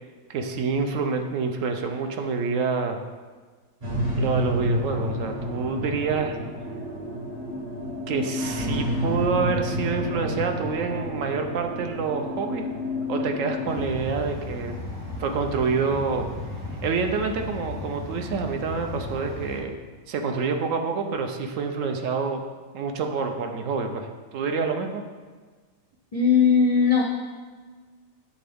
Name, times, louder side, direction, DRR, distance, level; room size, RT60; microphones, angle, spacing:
voice 1, 0.3-3.0 4.2-6.4 8.1-12.6 13.1-14.7 15.2-16.2 16.8-19.7 20.1-22.4 22.7-24.1 24.3-25.0, right 5 dB, 70° right, 5 dB, 0.9 m, -27 dB
sound 1, 3.8-13.8, left 1 dB, 45° right, 1.3 m, -30 dB
sound 2, 13.7-19.6, left 1 dB, 85° right, 1.6 m, -35 dB
voice 2, 26.1-27.0, left 6 dB, 65° left, -1 dB, 0.3 m, -18 dB
8.6 x 3.7 x 3.4 m, 1.4 s
omnidirectional pair, 1.5 m